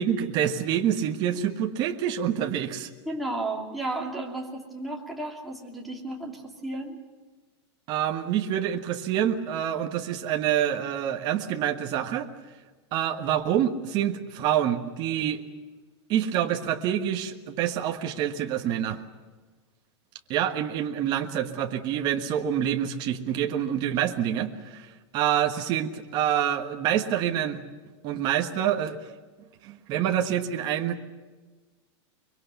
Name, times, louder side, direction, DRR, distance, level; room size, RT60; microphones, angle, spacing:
voice 1, 0.0-2.9 7.9-12.3 12.9-15.4 16.1-19.0 20.3-24.9 25.1-27.6 28.0-29.0 29.6-31.0, right 10 dB, 30° right, 4 dB, 1.4 m, -27 dB
voice 2, 3.1-7.0, right 2 dB, ahead, -3 dB, 2.8 m, -33 dB
24.0 x 23.0 x 6.9 m, 1.4 s
supercardioid pair, 165°, 15 cm